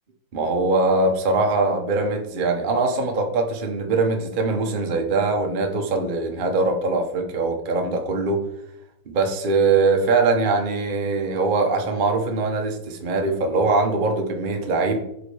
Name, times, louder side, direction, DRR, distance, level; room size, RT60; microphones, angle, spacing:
voice 1, 0.3-8.4 9.1-15.0, right 3 dB, 55° right, 3 dB, 0.5 m, -22 dB
5.2 x 4.9 x 4.8 m, 0.80 s
omnidirectional pair, 2.4 m